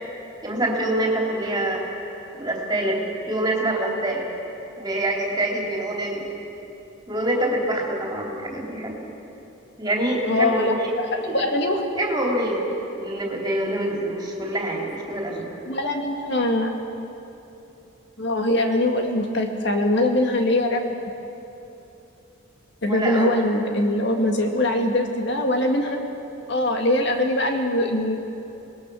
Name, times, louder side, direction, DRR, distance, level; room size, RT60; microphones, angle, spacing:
voice 1, 0.1-1.8 2.3-4.3 4.8-6.2 7.1-9.0 9.8-10.9 11.2-11.4 12.0-12.7 12.9-15.5 22.9-23.3, right 1 dB, 20° right, -2 dB, 3.3 m, -25 dB
voice 2, 10.2-11.1 11.3-11.8 15.7-16.7 18.2-20.8 22.8-26.0 26.5-28.2, left 1 dB, 55° left, 3 dB, 2.0 m, -22 dB
27.0 x 20.0 x 6.3 m, 2.9 s
head